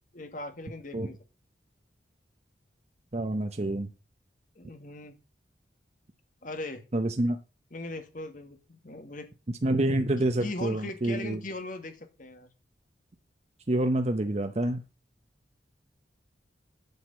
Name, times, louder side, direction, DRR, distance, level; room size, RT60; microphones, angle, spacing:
voice 1, 0.1-1.2 4.6-5.2 6.4-6.8 7.7-9.3 10.2-12.5, left 2 dB, 45° left, 1.7 m, -39 dB
voice 2, 3.1-3.9 6.9-7.4 9.6-11.4 13.7-14.8, right 1 dB, 35° right, 0.8 m, -27 dB
9.3 x 4.9 x 7.6 m
head